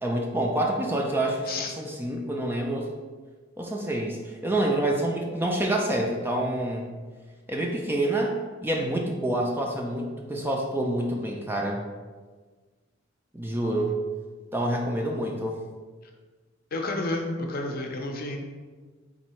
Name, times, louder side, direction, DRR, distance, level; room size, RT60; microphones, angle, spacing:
voice 1, 0.0-2.9 3.6-6.9 7.5-11.8 13.3-13.9 14.5-15.6, right 1 dB, 10° right, 0 dB, 0.3 m, -27 dB
voice 2, 16.7-18.4, left 2 dB, 45° left, 2 dB, 0.6 m, -30 dB
4.1 x 2.7 x 4.3 m, 1.4 s
head